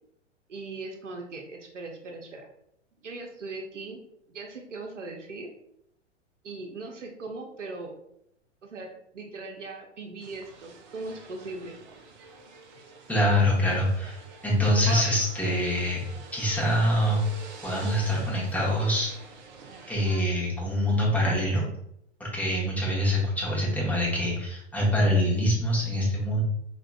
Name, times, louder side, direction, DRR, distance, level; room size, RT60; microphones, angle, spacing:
voice 1, 0.5-2.5 3.0-4.0 4.3-5.5 6.4-7.9 8.6-11.8, right 3 dB, 85° right, 2 dB, 0.7 m, -39 dB
sound 1, 10.2-20.2, right 3 dB, 40° right, 0.5 m, -44 dB
voice 2, 13.1-16.1 16.3-17.2 17.6-19.1 19.9-21.6 22.2-26.4, equal, 5° left, -6 dB, 0.8 m, -25 dB
4.7 x 2.3 x 2.2 m, 0.75 s
figure-of-eight pair, 105°, 36 cm